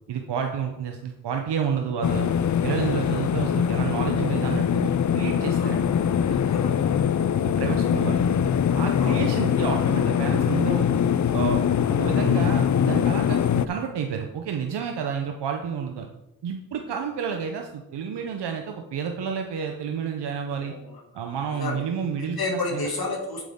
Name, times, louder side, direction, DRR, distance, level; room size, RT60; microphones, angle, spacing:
voice 1, 0.1-2.3 2.6-5.9 7.4-8.2 8.8-10.9 11.3-11.6 11.9-13.4 13.7-16.1 16.4-20.7 21.1-22.9, right 7 dB, 90° right, 4 dB, 0.7 m, -30 dB
sound 1, 2.0-13.7, left 8 dB, 45° left, 0.5 m, -22 dB
voice 2, 5.4-5.8 6.4-7.0 9.0-9.2 20.6-21.0 21.5-21.8 22.4-23.4, left 3 dB, 65° left, 0 dB, 2.2 m, -31 dB
8.2 x 7.8 x 3.6 m, 0.92 s
cardioid pair, 45°, 40 cm